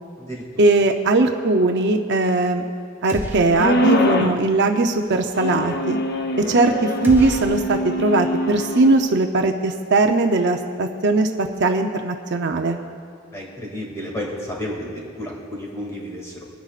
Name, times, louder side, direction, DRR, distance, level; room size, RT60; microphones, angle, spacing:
voice 1, 0.6-2.6 3.0-6.0 6.4-12.8, right 2 dB, 55° right, 5 dB, 0.6 m, -19 dB
sound 1, 3.1-4.0 4.3-4.4 7.0-8.3, equal, 10° right, 1.3 m, -33 dB
sound 2, 3.5-4.4 5.3-9.0, left 1 dB, 50° left, 0.7 m, -23 dB
voice 2, 13.3-16.3, equal, 15° left, -3 dB, 2.3 m, -31 dB
25.0 x 10.0 x 2.5 m, 2.3 s
head